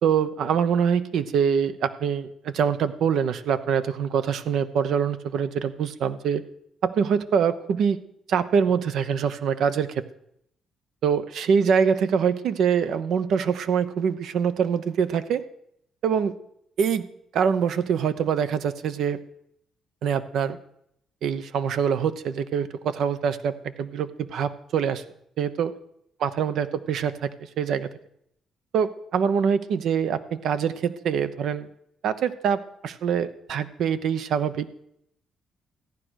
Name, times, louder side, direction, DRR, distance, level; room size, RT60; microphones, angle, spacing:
voice 1, 0.0-6.4 6.8-8.0 8.3-10.0 11.0-15.4 16.0-16.3 16.8-17.1 17.3-19.2 20.0-20.6 21.2-25.0 25.4-25.7 26.2-27.3 27.6-27.9 28.7-31.7 32.0-34.7, right 7 dB, 75° right, 12 dB, 0.9 m, -24 dB
14.5 x 10.5 x 6.4 m, 0.74 s
cardioid pair, 90°, 0 cm